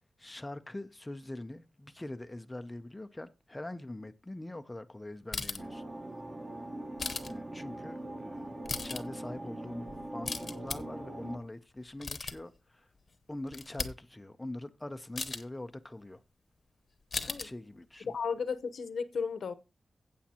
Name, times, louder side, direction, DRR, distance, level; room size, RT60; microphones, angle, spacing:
voice 1, 0.2-5.8 7.3-8.5 8.8-12.9 13.3-16.2 17.2-18.2, left 1 dB, 10° left, 0.5 m, -43 dB
sound 1, 5.3-5.7 7.0-7.3 8.4-9.0 9.9-10.8 11.8-12.6 13.1-13.2 13.5-13.9 15.1-15.4 17.1-17.4, left 4 dB, 40° left, 0.9 m, -37 dB
sound 2, 5.6-11.4, right 1 dB, 25° right, 1.1 m, -42 dB
voice 2, 17.2-17.5 18.0-19.5, left 5 dB, 65° left, 0.9 m, -34 dB
14.5 x 8.2 x 2.9 m
wide cardioid pair, 155°, 0 cm